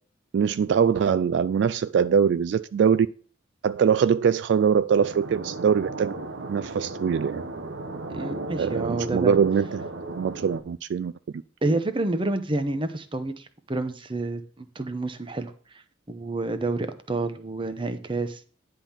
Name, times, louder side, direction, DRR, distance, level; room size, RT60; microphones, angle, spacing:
voice 1, 0.3-3.1 3.6-6.1 6.5-7.4 8.6-9.9 10.1-11.1, right 7 dB, 70° right, 0.3 m, -22 dB
sound 1, 5.0-10.6, right 2 dB, 90° right, 0.9 m, -35 dB
voice 2, 8.1-9.3 11.6-18.5, right 2 dB, 30° right, 0.9 m, -29 dB
10.0 x 3.7 x 7.3 m
head